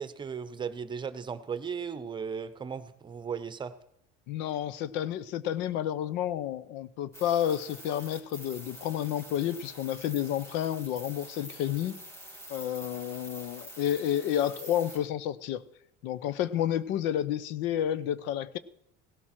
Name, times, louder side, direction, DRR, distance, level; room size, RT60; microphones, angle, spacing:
voice 1, 0.0-3.7, right 6 dB, 25° right, 0.9 m, -36 dB
voice 2, 4.3-12.0 12.5-15.6 16.0-18.6, left 11 dB, 75° left, 0.8 m, -30 dB
sound 1, 7.1-15.0, equal, 15° left, 3.9 m, -46 dB
16.5 x 12.5 x 4.4 m
cardioid pair, 120°, 19 cm